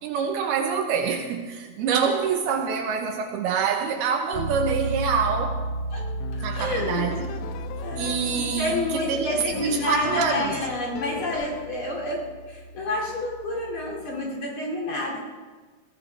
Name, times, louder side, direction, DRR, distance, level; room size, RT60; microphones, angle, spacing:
voice 1, 0.0-5.6 6.4-7.3 8.0-10.6, right 6 dB, 75° right, 3 dB, 2.8 m, -26 dB
Bass guitar, 4.3-14.0, right 1 dB, 20° left, 2.6 m, -34 dB
sound 1, 6.0-11.7, left 11 dB, 80° left, 2.7 m, -39 dB
voice 2, 6.3-7.2 7.8-15.2, left 1 dB, 35° left, -2 dB, 2.6 m, -29 dB
21.5 x 17.0 x 3.4 m, 1.4 s
omnidirectional pair, 4.9 m